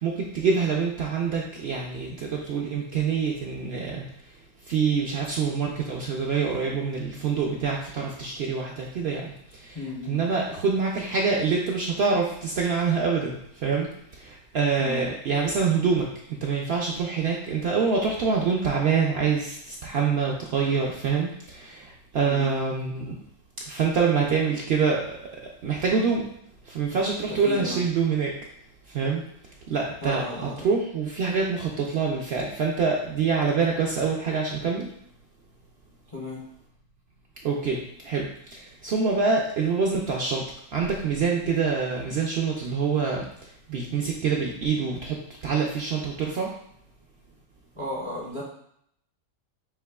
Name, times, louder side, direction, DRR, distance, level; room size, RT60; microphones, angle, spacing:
voice 1, 0.0-4.0 4.7-9.8 10.1-23.2 23.7-25.2 25.6-26.3 26.7-28.3 28.9-29.2 29.7-34.9 37.4-40.4 40.7-45.2 45.4-46.5, right 5 dB, 65° right, -1 dB, 0.6 m, -26 dB
voice 2, 9.7-10.2 14.8-15.0 22.2-22.5 27.3-27.8 30.0-30.7 36.1-36.4 47.8-48.4, left 1 dB, 30° left, -4 dB, 0.5 m, -34 dB
6.9 x 2.9 x 2.3 m, 0.72 s
omnidirectional pair, 1.5 m